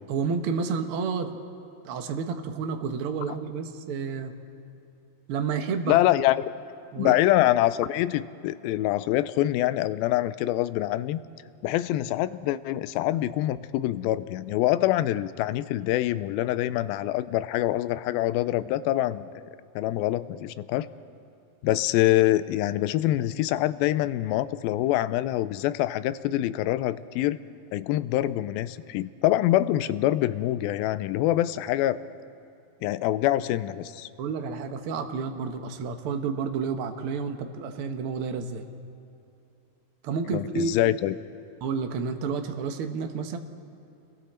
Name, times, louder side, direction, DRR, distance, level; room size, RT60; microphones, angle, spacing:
voice 1, 0.1-1.4 1.8-4.3 5.3-5.9 6.9-7.2 34.2-38.6 40.0-40.7 41.6-43.4, right 5 dB, 75° right, 5 dB, 1.3 m, -30 dB
voice 2, 5.9-6.4 7.0-11.2 11.6-19.3 19.8-20.9 21.6-27.4 27.7-32.0 32.8-34.1 40.3-41.1, left 14 dB, 90° left, 15 dB, 2.4 m, -25 dB
30.0 x 21.5 x 4.3 m, 2.7 s
omnidirectional pair, 4.1 m